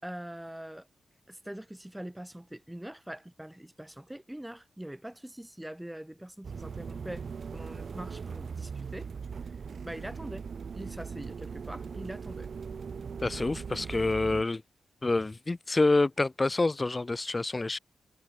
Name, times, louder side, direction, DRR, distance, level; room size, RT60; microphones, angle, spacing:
voice 1, 0.0-0.9 1.3-7.3 7.5-9.1 9.4-9.5 9.8-10.4 10.7-12.5, right 1 dB, 10° right, 4.9 m, -43 dB
sound 1, 6.4-14.4, right 6 dB, 60° right, 0.4 m, -40 dB
voice 2, 13.2-14.6 15.0-17.8, left 2 dB, 30° left, 0.5 m, -27 dB
cardioid pair, 50°, 0 cm